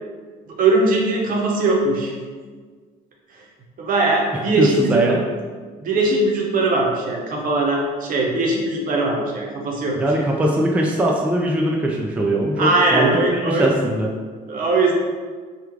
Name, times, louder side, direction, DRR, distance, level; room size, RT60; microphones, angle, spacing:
voice 1, 0.5-2.1 3.8-5.2 5.8-10.3 12.6-13.7 14.5-14.9, right 2 dB, 55° right, -1 dB, 0.8 m, -20 dB
voice 2, 4.3-5.2 9.9-14.1, right 1 dB, 10° right, -1 dB, 0.3 m, -21 dB
3.1 x 2.3 x 3.6 m, 1.5 s
cardioid pair, 110°, 17 cm